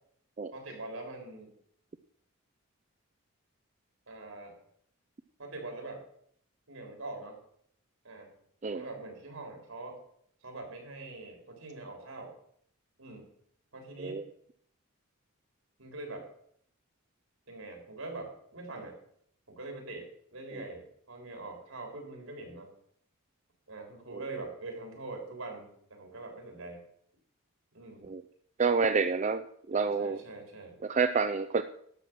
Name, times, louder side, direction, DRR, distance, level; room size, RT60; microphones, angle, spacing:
voice 1, 0.5-1.5 4.1-4.6 5.4-6.0 6.7-7.4 8.0-8.3 8.7-10.0 10.4-12.3 13.0-13.2 13.7-14.2 15.8-16.3 17.5-19.0 19.5-22.7 23.7-26.8 27.7-28.1 29.7-30.8, right 2 dB, 75° right, 2 dB, 3.7 m, -43 dB
voice 2, 28.6-30.2 30.8-31.6, right 5 dB, 35° right, 10 dB, 0.4 m, -28 dB
12.0 x 7.6 x 6.1 m, 0.66 s
head